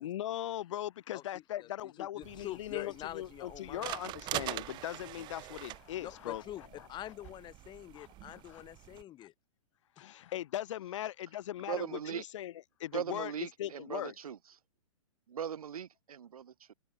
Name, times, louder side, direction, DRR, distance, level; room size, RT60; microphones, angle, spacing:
voice 1, 0.0-6.4 6.8-6.9 7.9-8.1 8.3-8.6 10.0-12.5 12.8-14.1, left 12 dB, 55° left, 1.1 m, -39 dB
voice 2, 1.1-4.0 6.0-9.3, left 13 dB, 25° left, 1.5 m, -46 dB
sound 1, 2.2-9.0, right 17 dB, 25° right, 0.6 m, -44 dB
voice 3, 11.7-12.2 12.9-14.4 15.3-16.7, right 8 dB, 80° right, 0.5 m, -39 dB
figure-of-eight pair, 115°, 19 cm